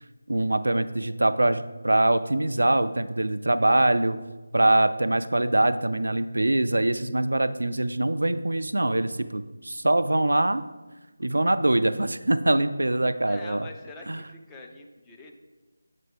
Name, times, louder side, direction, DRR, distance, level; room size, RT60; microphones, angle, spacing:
voice 1, 0.3-4.2 4.5-10.6 11.2-13.7 14.1-14.2, right 1 dB, 70° right, 12 dB, 0.3 m, -23 dB
voice 2, 13.3-15.3, left 3 dB, 10° left, 0 dB, 0.4 m, -44 dB
7.4 x 4.2 x 3.3 m, 1.2 s
figure-of-eight pair, 160°, 0 cm